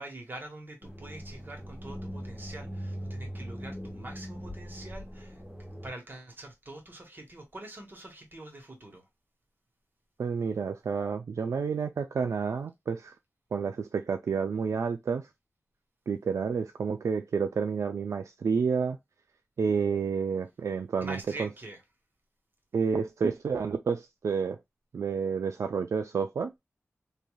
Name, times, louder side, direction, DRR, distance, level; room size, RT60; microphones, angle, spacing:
voice 1, 0.0-5.4 5.8-9.0 21.0-21.8, right 2 dB, 40° right, 1.2 m, -44 dB
sound 1, 0.8-5.9, equal, ahead, 1.3 m, -40 dB
voice 2, 10.2-13.1 13.5-15.3 16.1-19.0 19.6-21.5 22.7-24.6 24.9-26.5, right 5 dB, 85° right, 0.3 m, -30 dB
3.2 x 2.6 x 2.3 m
wide cardioid pair, 75°, 5 cm